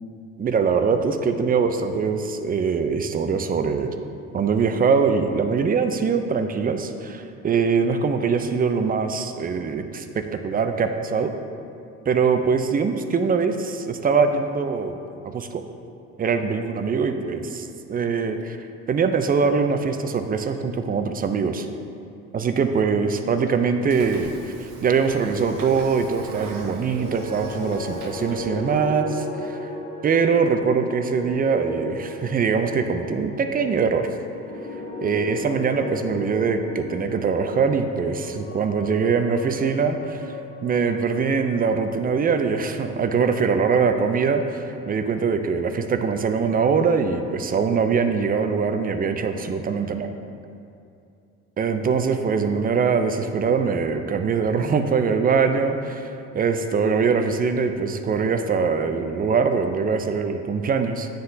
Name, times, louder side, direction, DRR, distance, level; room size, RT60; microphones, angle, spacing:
voice 1, 0.4-3.9 4.3-11.3 12.1-15.0 15.3-15.6 16.2-18.6 18.9-21.7 22.3-24.5 24.8-29.5 30.0-34.1 35.0-40.3 40.6-50.1 51.6-61.1, right 5 dB, 25° right, 7 dB, 0.5 m, -22 dB
Train / Sliding door, 23.8-28.9, right 3 dB, 65° right, 0.8 m, -41 dB
sound 1, 26.8-43.1, left 2 dB, 25° left, 1.2 m, -36 dB
9.3 x 3.9 x 2.7 m, 2.5 s
hypercardioid pair, 70°, 33 cm